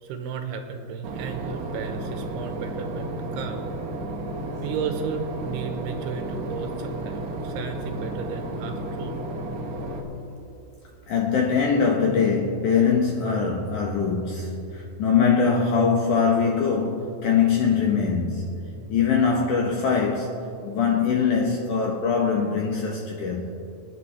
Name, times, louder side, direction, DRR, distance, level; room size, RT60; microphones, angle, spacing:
voice 1, 0.0-3.7 4.6-9.1, right 6 dB, 80° right, 3.0 m, -34 dB
Boat Water vehicle / Engine, 1.0-10.0, right 2 dB, 65° right, 1.8 m, -33 dB
voice 2, 11.1-18.5 18.9-23.5, left 5 dB, 70° left, 1.9 m, -22 dB
28.5 x 10.0 x 3.3 m
omnidirectional pair, 4.7 m